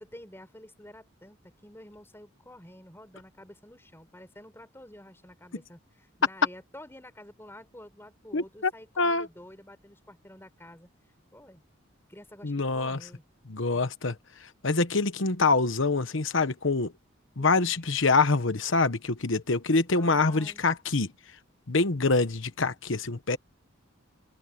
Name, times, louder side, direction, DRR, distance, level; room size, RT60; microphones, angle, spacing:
voice 1, 0.0-10.9 11.3-11.6 12.1-13.2 13.6-13.9 17.4-17.9 20.0-20.6, left 1 dB, 10° left, 4.1 m, -49 dB
voice 2, 8.3-8.7 9.0-9.3 12.4-13.0 13.5-14.1 14.6-16.9 17.4-21.1 21.7-23.4, left 3 dB, 65° left, 1.1 m, -25 dB
head